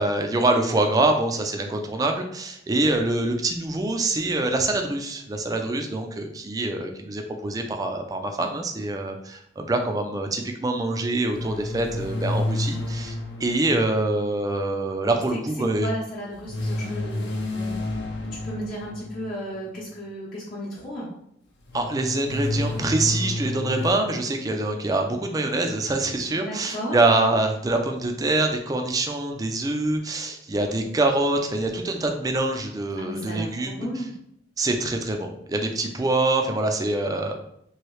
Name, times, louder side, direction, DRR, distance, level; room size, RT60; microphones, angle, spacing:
voice 1, 0.0-15.9 21.7-33.9 34.6-37.4, right 2 dB, 20° right, 4 dB, 0.3 m, -25 dB
sound 1, 11.3-14.9 16.5-19.6 21.7-23.9, left 1 dB, 75° left, 0.6 m, -30 dB
voice 2, 15.7-21.1 26.3-27.0 33.0-34.1, equal, 50° left, -7 dB, 0.8 m, -35 dB
3.1 x 2.7 x 3.0 m, 0.72 s
head